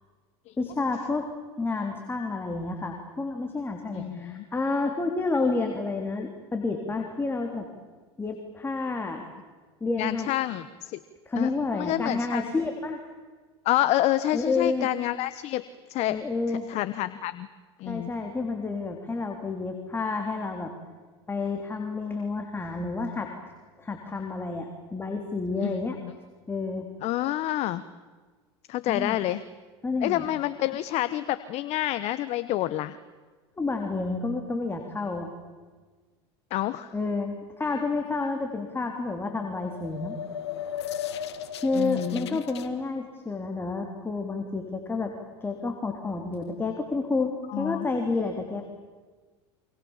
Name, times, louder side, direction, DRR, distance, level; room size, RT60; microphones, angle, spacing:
voice 1, 0.6-1.2 1.6-7.7 8.2-9.3 9.8-10.3 11.3-13.0 14.3-14.9 16.1-16.6 17.9-20.7 21.3-23.3 23.8-26.0 26.5-26.9 28.9-29.2 29.8-30.3 33.6-35.3 36.9-40.2 41.6-45.1 45.4-48.6, left 3 dB, 15° left, 3 dB, 3.4 m, -30 dB
voice 2, 3.9-4.4 10.0-11.0 11.4-12.4 13.6-15.6 15.9-16.2 16.5-17.5 17.8-18.1 25.6-25.7 26.0-26.1 27.0-27.8 28.7-29.4 30.0-33.0 36.5-36.9 41.7-42.4 47.5-47.9, left 14 dB, 50° left, 13 dB, 1.1 m, -28 dB
sound 1, 39.5-42.7, left 9 dB, 85° left, 1.8 m, -36 dB
28.0 x 25.5 x 7.4 m, 1.4 s
hypercardioid pair, 95°, 14 cm